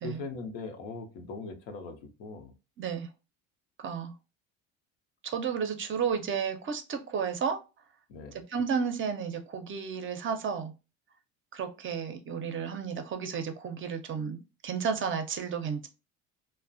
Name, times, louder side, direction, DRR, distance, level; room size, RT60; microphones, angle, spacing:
voice 1, 0.0-2.5 8.1-8.3, left 4 dB, 85° left, 0.7 m, -40 dB
voice 2, 2.8-3.1 3.8-4.1 5.2-7.6 8.5-10.7 11.5-14.4 14.6-15.9, right 6 dB, 35° right, 0.5 m, -32 dB
2.3 x 2.1 x 2.5 m
supercardioid pair, 85°, 36 cm